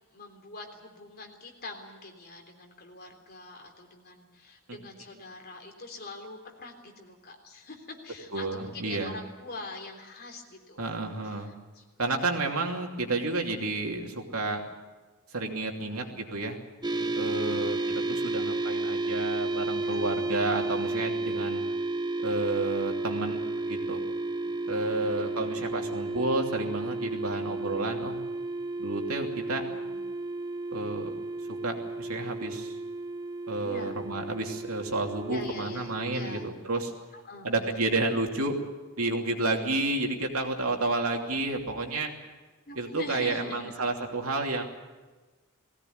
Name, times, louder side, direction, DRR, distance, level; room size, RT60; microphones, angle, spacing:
voice 1, 0.1-10.9 11.2-12.5 15.6-16.2 17.0-17.1 17.4-18.4 19.7-20.4 21.3-21.8 24.4-25.7 27.2-27.8 29.5-30.0 33.6-34.0 35.3-36.5 37.1-37.8 42.7-43.7, left 2 dB, 45° left, 3 dB, 3.5 m, -45 dB
voice 2, 8.3-9.1 10.8-11.5 12.0-14.6 15.3-16.6 17.1-21.6 22.2-24.0 24.7-28.2 28.8-29.6 30.7-31.2 31.5-32.7 33.5-36.9 37.4-38.6 39.0-42.1 42.8-44.6, right 2 dB, 80° right, 2 dB, 2.8 m, -31 dB
sound 1, 16.8-36.5, right 2 dB, 20° right, 0.9 m, -33 dB
20.0 x 17.0 x 9.4 m, 1.3 s
head